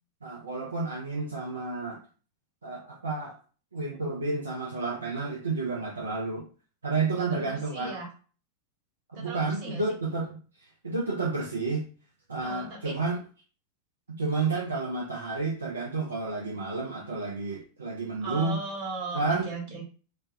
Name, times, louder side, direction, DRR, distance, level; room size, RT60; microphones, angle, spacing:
voice 1, 0.2-2.0 2.6-3.4 3.7-6.4 6.8-8.0 9.1-10.3 10.8-11.9 12.3-13.2 14.2-18.6 19.1-19.5, right 3 dB, 75° right, -1 dB, 0.4 m, -30 dB
voice 2, 7.2-8.1 9.1-9.8 12.4-12.9 18.2-19.9, right 3 dB, 45° right, -1 dB, 1.0 m, -37 dB
2.1 x 2.1 x 2.8 m, 0.38 s
figure-of-eight pair, 90°, 0 cm